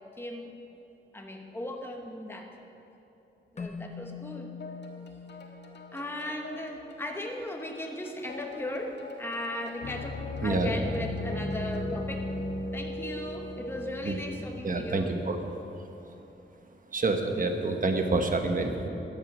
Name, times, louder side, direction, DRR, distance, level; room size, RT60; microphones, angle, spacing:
voice 1, 0.2-0.5 1.1-2.5 3.5-4.5 5.9-12.3 12.7-15.1, left 1 dB, 10° left, 2 dB, 1.2 m, -37 dB
Keyboard (musical), 3.6-6.8, left 5 dB, 35° left, 0.9 m, -44 dB
sound 1, 4.6-12.0, left 3 dB, 60° left, 1.7 m, -47 dB
sound 2, 9.8-15.6, left 2 dB, 75° left, 1.2 m, -36 dB
voice 2, 14.6-15.4 16.9-18.9, right 3 dB, 45° right, 5 dB, 1.2 m, -27 dB
15.5 x 11.0 x 6.2 m, 3.0 s
wide cardioid pair, 150°, 20 cm